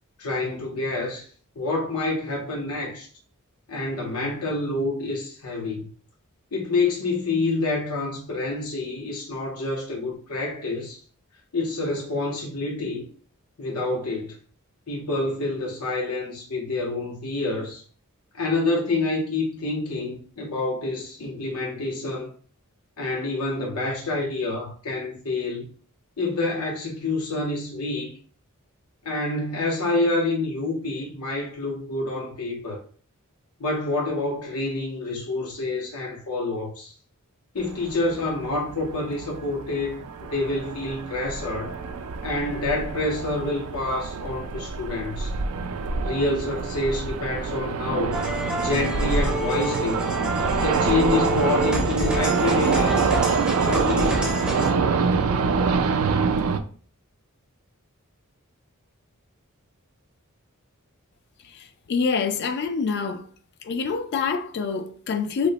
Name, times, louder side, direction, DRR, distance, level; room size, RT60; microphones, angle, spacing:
voice 1, 0.2-1.3 1.6-3.1 3.7-5.9 6.5-11.0 11.5-13.0 13.6-14.4 14.9-17.8 18.3-22.3 23.0-25.7 26.2-28.2 29.0-32.8 33.6-36.9 37.5-41.7 42.2-45.3 46.0-48.2 48.6-50.1 50.6-53.0 53.6-54.4, left 2 dB, 85° left, 0.7 m, -27 dB
sound 1, 37.6-56.6, right 5 dB, 70° right, 0.3 m, -26 dB
sound 2, 48.1-54.7, equal, 5° right, 0.5 m, -29 dB
voice 2, 61.4-63.3 63.6-65.5, left 5 dB, 50° left, 0.3 m, -26 dB
3.0 x 2.0 x 3.9 m
head